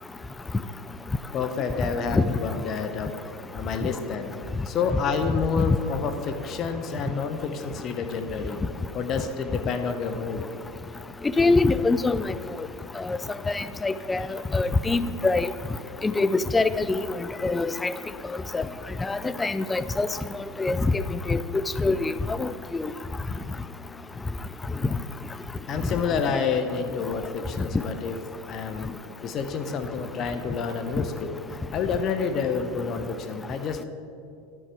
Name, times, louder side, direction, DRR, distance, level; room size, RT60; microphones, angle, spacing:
voice 1, 1.3-3.1 3.5-4.3 4.6-8.6 8.9-10.5 14.2-14.6 25.7-28.2 28.5-29.0 29.2-33.8, left 5 dB, 40° left, 7 dB, 0.8 m, -29 dB
voice 2, 11.4-12.2 13.1-13.2 13.5-14.2 14.5-15.5 16.0-17.0 17.4-17.9 18.5-18.6 19.0-20.1 20.6-21.4 21.8-22.1 22.4-22.5 22.8-22.9, left 3 dB, 15° left, 14 dB, 0.4 m, -23 dB
11.0 x 5.7 x 4.8 m, 2.4 s
hypercardioid pair, 95°, 0 cm